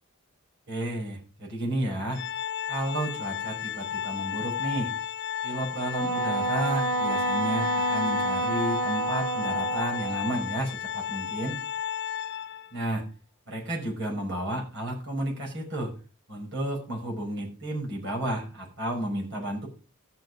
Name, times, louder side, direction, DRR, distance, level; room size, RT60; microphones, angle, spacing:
voice 1, 0.7-2.2 2.7-4.9 5.4-11.6 12.7-13.1 13.5-15.9 16.3-19.7, right 1 dB, 55° right, -1 dB, 5.7 m, -32 dB
Organ, 2.1-12.8, left 9 dB, 50° left, 0.7 m, -33 dB
Wind instrument woodwind instrument, 5.9-10.4, right 3 dB, 80° right, 0.9 m, -28 dB
14.0 x 7.0 x 4.9 m, 0.34 s
head